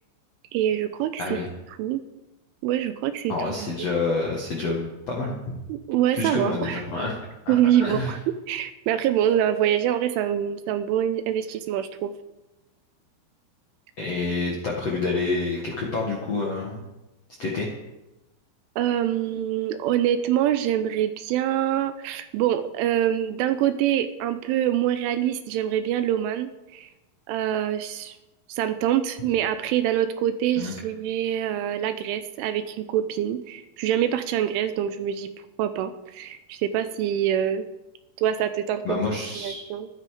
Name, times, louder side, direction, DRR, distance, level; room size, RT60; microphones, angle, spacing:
voice 1, 0.5-1.4 1.8-2.0 2.6-3.7 5.7-6.8 7.5-8.2 8.5-12.1 18.8-26.9 27.3-28.2 28.5-35.3 35.6-37.7 38.2-39.0 39.4-39.9, right 11 dB, 80° right, 10 dB, 3.0 m, -25 dB
voice 2, 3.3-5.6 6.1-7.2 7.4-8.2 14.0-16.8 17.4-17.7 30.6-30.7 38.8-39.6, left 3 dB, 65° left, -2 dB, 1.5 m, -28 dB
16.0 x 12.0 x 4.9 m, 1.0 s
omnidirectional pair, 5.9 m